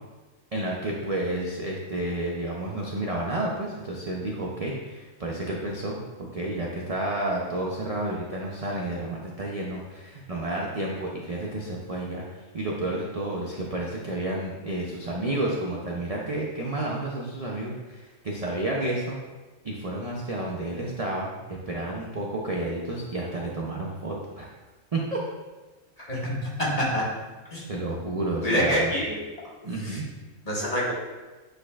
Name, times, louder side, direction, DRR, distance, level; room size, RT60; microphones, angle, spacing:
voice 1, 0.5-19.2 19.6-24.5 24.9-25.2 27.7-28.9 29.6-30.0, right 1 dB, 35° right, -3 dB, 0.6 m, -31 dB
voice 2, 26.1-27.0 27.5-27.6 28.4-29.2 29.9-30.0 30.4-30.9, equal, 30° left, -6 dB, 1.7 m, -26 dB
8.5 x 5.1 x 2.4 m, 1.2 s
omnidirectional pair, 1.4 m